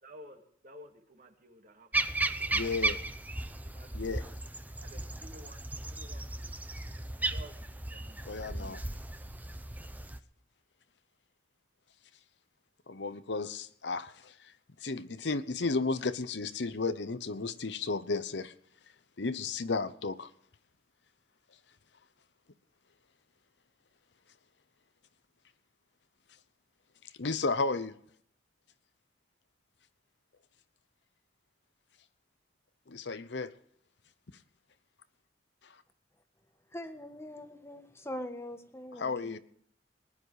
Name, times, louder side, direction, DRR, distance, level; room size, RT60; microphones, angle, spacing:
voice 1, 0.0-2.6 3.6-4.4 4.8-5.6 5.9-6.5 7.2-8.8, equal, 45° right, 2.4 m, -54 dB
sound 1, 1.9-10.2, right 2 dB, 10° right, 0.7 m, -35 dB
voice 2, 2.5-3.0 3.9-4.2 8.2-8.8 12.9-14.3 14.8-18.5 19.2-20.3 27.2-28.0 32.9-33.5 39.0-39.4, left 3 dB, 70° left, 0.8 m, -33 dB
voice 3, 36.7-39.4, left 1 dB, 15° left, 1.4 m, -42 dB
19.5 x 10.5 x 4.9 m
head